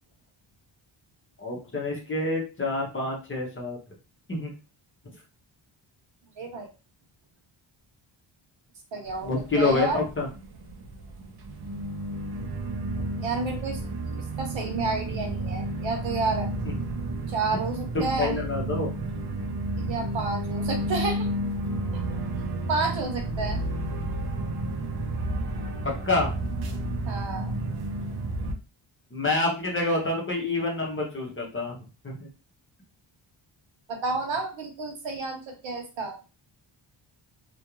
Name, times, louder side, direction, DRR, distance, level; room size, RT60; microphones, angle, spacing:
voice 1, 1.4-3.8 4.3-4.5 9.2-10.3 18.2-18.9 26.0-26.3 29.1-32.3, left 2 dB, 25° left, -1 dB, 0.6 m, -27 dB
voice 2, 6.4-6.7 8.9-9.3 9.6-10.0 13.2-13.8 14.4-16.5 17.3-18.4 19.8-21.3 21.9-22.0 22.7-23.6 27.1-27.5 33.9-36.2, right 3 dB, 70° right, 3 dB, 0.9 m, -30 dB
sound 1, 9.1-28.5, right 1 dB, 55° right, 0.5 m, -31 dB
2.3 x 2.1 x 2.9 m, 0.31 s
wide cardioid pair, 170°, 48 cm